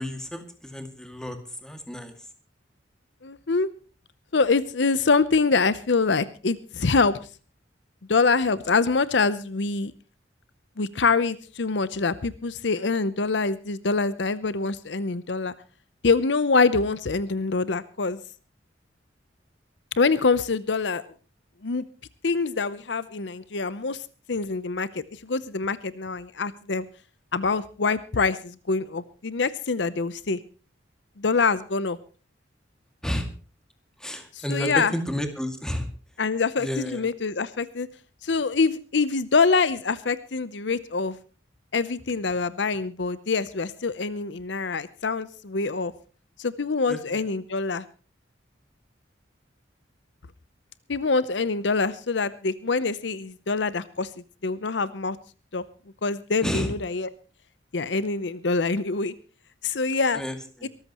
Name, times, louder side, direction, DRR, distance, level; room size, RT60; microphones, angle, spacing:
voice 1, 0.0-2.1 33.0-33.3 34.0-35.9 36.6-37.1 46.9-47.2 56.4-56.7 60.1-60.7, equal, 5° left, 6 dB, 2.2 m, -31 dB
voice 2, 3.2-3.7 4.3-7.2 8.1-9.9 10.8-15.5 16.0-18.2 20.0-21.0 21.6-21.8 22.2-24.0 24.3-26.8 27.3-30.4 31.2-32.0 34.3-34.9 36.2-37.9 38.2-41.2 41.7-45.9 46.4-47.8 50.9-54.1 54.4-55.2 55.5-55.6 56.0-57.1 57.7-59.1 59.6-60.2 60.6-60.7, left 4 dB, 65° left, 16 dB, 0.7 m, -25 dB
23.5 x 14.0 x 3.0 m, 0.36 s
head